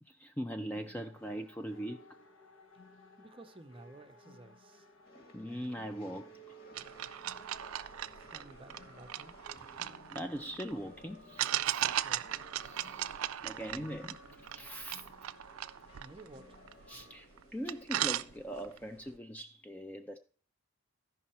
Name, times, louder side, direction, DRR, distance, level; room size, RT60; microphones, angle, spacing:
voice 1, 0.0-2.0 5.3-6.6 10.1-11.9 12.6-15.0 16.9-20.2, equal, 10° left, 0.4 m, -41 dB
sound 1, 0.6-17.2, equal, 75° left, 1.1 m, -58 dB
voice 2, 3.2-4.9 8.1-9.9 11.8-12.3 16.0-16.7, right 2 dB, 25° right, 0.6 m, -54 dB
sound 2, 5.0-19.1, left 1 dB, 45° left, 1.8 m, -59 dB
sound 3, 6.7-10.7 11.4-17.0 17.4-17.5 17.7-18.8, right 12 dB, 90° right, 0.4 m, -37 dB
13.5 x 5.5 x 4.3 m
head